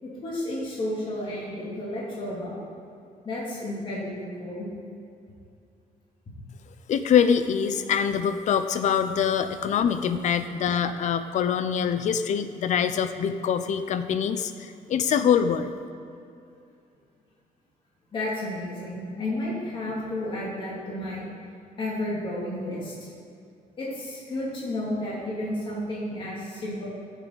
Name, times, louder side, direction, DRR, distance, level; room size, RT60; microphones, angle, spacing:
voice 1, 0.0-2.6 3.2-4.7 18.1-21.3 21.8-22.9 23.8-26.9, left 1 dB, 35° left, -6 dB, 2.5 m, -32 dB
voice 2, 6.9-15.7, left 7 dB, 55° left, 11 dB, 0.5 m, -24 dB
13.5 x 7.4 x 4.0 m, 2.5 s
cardioid pair, 155°, 15 cm